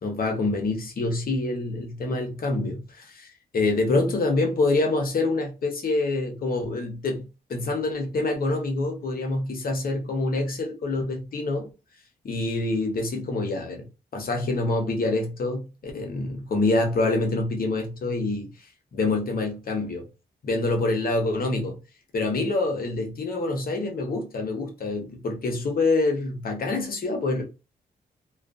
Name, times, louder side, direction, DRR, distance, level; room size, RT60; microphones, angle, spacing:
voice 1, 0.0-11.7 12.2-18.5 18.9-20.0 20.4-21.8 22.1-27.5, left 2 dB, 55° left, 0.8 m, -26 dB
2.4 x 2.3 x 2.4 m
cardioid pair, 75°, 18 cm